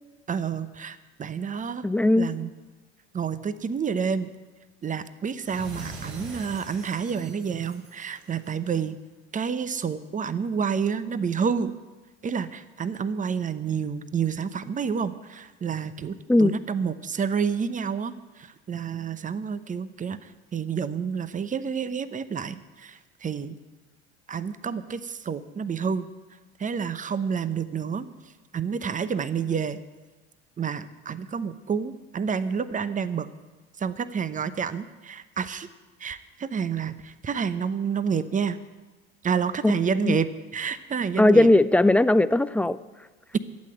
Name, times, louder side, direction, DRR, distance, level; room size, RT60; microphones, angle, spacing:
voice 1, 0.3-1.8 2.2-2.5 3.1-4.3 4.8-9.0 9.3-11.7 12.2-23.6 24.3-26.1 26.6-28.1 28.5-29.8 30.6-33.3 33.8-35.7 36.0-38.6 39.2-41.5 43.3-43.4, right 6 dB, 20° right, 14 dB, 0.8 m, -29 dB
voice 2, 1.8-2.3 16.3-16.5 39.6-39.7 40.0-40.2 41.2-42.8, left 1 dB, 5° left, 15 dB, 0.3 m, -18 dB
sound 1, 5.3-8.7, right 2 dB, 65° right, 3.5 m, -42 dB
12.5 x 8.4 x 8.9 m, 1.2 s
hypercardioid pair, 75°, 35 cm